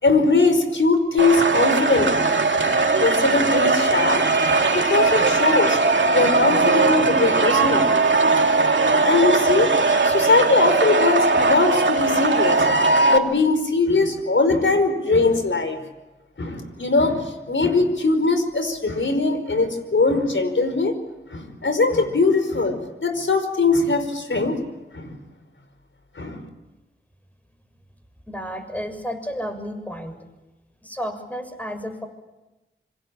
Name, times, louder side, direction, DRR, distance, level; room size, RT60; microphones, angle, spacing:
voice 1, 0.0-2.3 2.6-5.8 6.1-8.1 8.8-9.8 10.0-15.8 16.4-20.9 21.3-24.6 24.9-25.2 26.2-26.5, left 3 dB, 65° left, 9 dB, 5.1 m, -21 dB
sound 1, 1.2-13.2, right 3 dB, 60° right, 2.7 m, -19 dB
voice 2, 28.3-30.2 30.8-32.1, equal, 5° left, 6 dB, 7.0 m, -32 dB
27.0 x 25.0 x 8.8 m, 1.1 s
cardioid pair, 45°, 21 cm